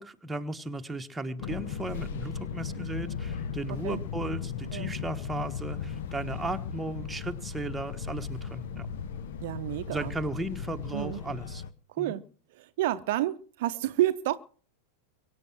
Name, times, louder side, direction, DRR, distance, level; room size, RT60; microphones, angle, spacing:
voice 1, 0.0-8.9 9.9-11.6 12.0-12.2, right 2 dB, 10° right, 1.2 m, -36 dB
Fixed-wing aircraft airplane, 1.4-11.7, left 7 dB, 55° left, 1.1 m, -36 dB
voice 2, 9.4-10.1 10.9-11.2 11.9-12.2 12.5-14.4, right 14 dB, 50° right, 0.7 m, -30 dB
23.0 x 8.7 x 6.2 m
figure-of-eight pair, 90°, 0 cm